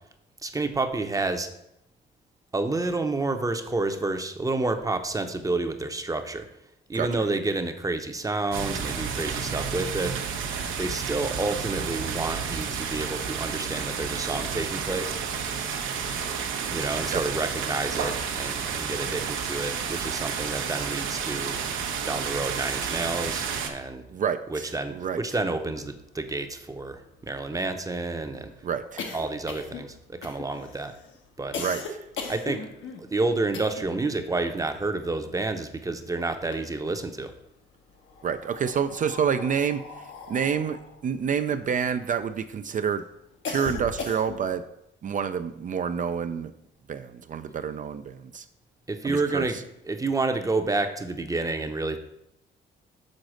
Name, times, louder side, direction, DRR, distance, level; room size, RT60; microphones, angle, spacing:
voice 1, 0.4-1.5 2.5-6.5 6.9-10.3 10.8-15.1 16.7-21.6 22.0-24.0 24.5-28.5 29.1-30.9 31.4-31.6 32.2-32.7 33.0-37.3 48.9-49.6 49.9-52.0, right 3 dB, 15° right, 7 dB, 0.7 m, -29 dB
sound 1, 8.5-23.7, right 6 dB, 85° right, 0.9 m, -31 dB
voice 2, 24.1-25.2 28.6-29.1 31.5-31.8 38.2-39.8 40.3-43.0 43.5-44.6 45.0-46.5 46.9-48.5 49.0-49.6, right 7 dB, 40° right, 10 dB, 0.4 m, -28 dB
sound 2, 25.9-26.0 26.2-26.3 26.6-34.1 34.4-35.9 36.3-37.2 38.0-42.4 42.9-44.6, left 4 dB, 75° left, 1.1 m, -39 dB
6.5 x 4.0 x 6.2 m, 0.81 s
cardioid pair, 90°, 20 cm